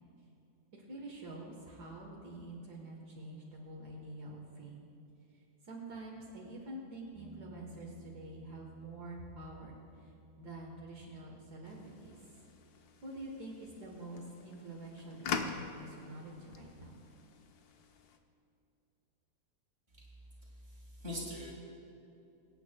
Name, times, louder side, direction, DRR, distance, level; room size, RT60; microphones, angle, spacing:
voice 1, 0.7-4.9 5.3-12.1 13.0-17.0, right 1 dB, 75° right, -2 dB, 1.8 m, -47 dB
sound 1, 7.1-14.7 17.8-17.9, left 1 dB, 50° right, 3.0 m, -59 dB
sound 2, 11.6-18.2, left 6 dB, 70° left, 1.2 m, -44 dB
voice 2, 20.4-21.5, left 1 dB, 35° right, -5 dB, 3.1 m, -43 dB
23.5 x 9.2 x 2.2 m, 2.9 s
omnidirectional pair, 1.8 m